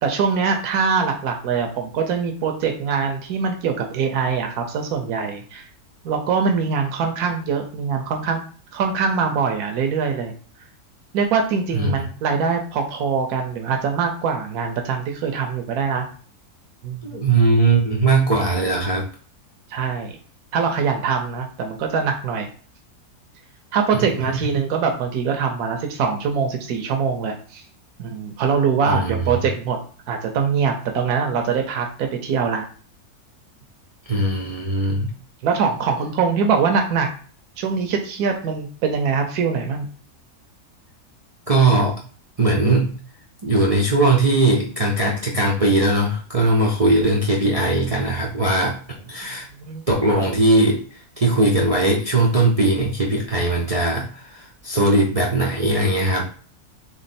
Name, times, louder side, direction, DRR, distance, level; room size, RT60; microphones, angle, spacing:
voice 1, 0.0-5.7 6.0-8.4 8.7-10.3 11.1-16.1 16.8-17.2 19.7-20.1 20.5-22.5 23.7-27.6 28.0-29.8 30.1-32.6 35.4-37.1 37.6-39.9 49.2-49.3 49.6-50.1, right 5 dB, 80° right, 3 dB, 1.2 m, -23 dB
voice 2, 17.0-19.1 23.9-24.4 28.9-29.1 34.1-35.1 41.5-42.0 42.4-43.0 43.4-48.8 49.0-49.5 49.9-56.3, right 2 dB, 55° right, -4 dB, 0.4 m, -19 dB
3.6 x 3.1 x 4.1 m, 0.42 s
omnidirectional pair, 1.6 m